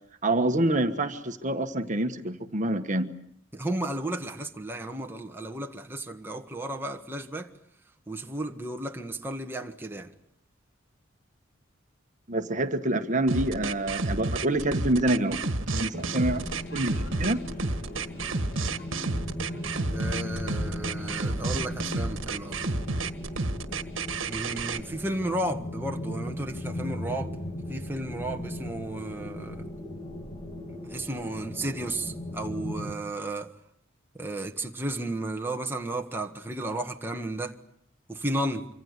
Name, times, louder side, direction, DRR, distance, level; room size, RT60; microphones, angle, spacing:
voice 1, 0.2-3.1 12.3-16.5 16.7-17.4, right 1 dB, 40° right, 1.4 m, -27 dB
voice 2, 3.5-7.5 8.1-10.1 19.9-22.6 24.3-27.4 27.7-29.6 30.8-33.5 34.1-37.6 38.1-38.7, right 1 dB, 10° right, 1.5 m, -33 dB
sound 1, 13.3-24.8, right 3 dB, 70° right, 1.7 m, -30 dB
sound 2, 15.9-32.9, left 1 dB, 25° left, 2.1 m, -37 dB
sound 3, 16.0-21.4, left 1 dB, 55° left, 6.3 m, -54 dB
25.5 x 25.5 x 8.2 m
head